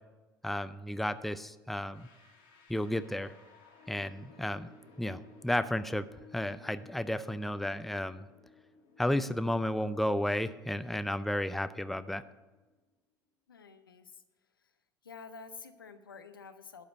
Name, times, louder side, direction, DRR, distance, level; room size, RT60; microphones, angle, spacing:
voice 1, 0.4-2.1 2.7-3.3 3.9-4.7 5.0-6.1 6.3-8.3 9.0-12.2, left 1 dB, ahead, 13 dB, 0.5 m, -32 dB
sound 1, 1.9-12.8, left 4 dB, 65° left, 2.5 m, -58 dB
voice 2, 13.5-14.2 14.6-14.7 15.0-16.8, left 5 dB, 85° left, 9 dB, 0.6 m, -49 dB
11.5 x 5.0 x 8.1 m, 1.2 s
figure-of-eight pair, 70°, 11 cm